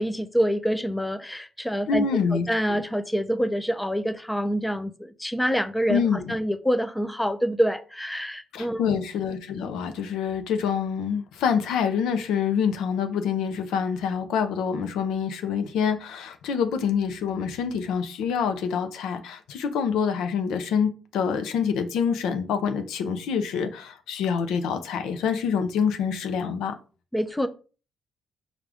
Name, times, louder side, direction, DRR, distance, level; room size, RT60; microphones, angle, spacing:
voice 1, 0.0-2.1 2.5-9.0 27.1-27.5, equal, 5° left, 0.4 m, -26 dB
voice 2, 1.9-2.5 5.9-6.3 8.5-26.8, left 6 dB, 85° left, 0.5 m, -26 dB
4.9 x 2.4 x 3.4 m
cardioid pair, 90°, 0 cm